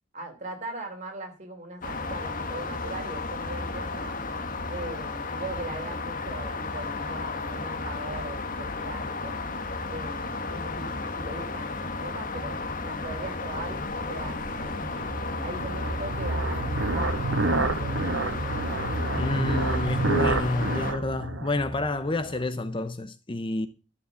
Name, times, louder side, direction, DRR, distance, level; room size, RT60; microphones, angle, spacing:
voice 1, 0.1-4.2 4.7-9.4 9.9-12.6 12.8-15.0 15.4-18.3, right 1 dB, 40° right, 3.5 m, -40 dB
sound 1, 1.8-20.9, left 3 dB, 45° left, 1.3 m, -33 dB
sound 2, 12.8-22.4, right 2 dB, 85° right, 1.2 m, -30 dB
voice 2, 19.1-23.7, left 2 dB, 25° left, 0.7 m, -29 dB
12.5 x 6.9 x 6.9 m
head